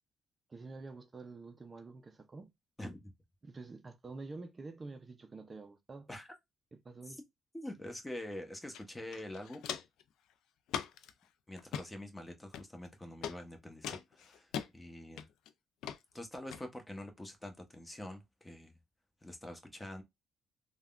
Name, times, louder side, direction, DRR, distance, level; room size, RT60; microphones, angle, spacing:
voice 1, 0.5-2.5 3.4-6.1 6.7-7.2, right 3 dB, 30° right, 0.4 m, -48 dB
voice 2, 2.8-3.1 6.1-6.3 7.1-7.2 7.5-9.6 11.5-15.3 16.1-18.8 19.2-20.0, left 1 dB, 15° left, 0.9 m, -45 dB
Walk footsteps, 8.7-8.8 9.1-10.0 10.7-11.1 11.6-11.9 12.5-12.9 13.2-13.4 13.8-14.7 15.2-15.5 15.8-16.0 16.5-16.6, left 9 dB, 85° left, 0.3 m, -40 dB
3.4 x 2.2 x 2.3 m
cardioid pair, 90°, 0 cm